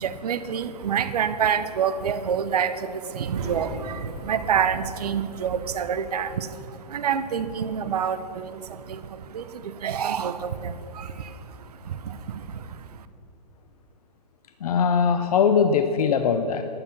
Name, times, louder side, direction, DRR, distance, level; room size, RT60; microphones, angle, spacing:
voice 1, 0.0-2.7 3.1-4.0 4.2-6.3 6.9-8.5 8.9-9.0 9.3-9.4 9.8-10.7, right 7 dB, 65° right, 12 dB, 0.9 m, -26 dB
sound 1, 3.3-8.7, right 1 dB, 30° right, 2.8 m, -40 dB
voice 2, 14.6-16.6, left 6 dB, 65° left, 8 dB, 0.8 m, -21 dB
11.5 x 11.0 x 5.9 m, 2.7 s
hypercardioid pair, 120°, 21 cm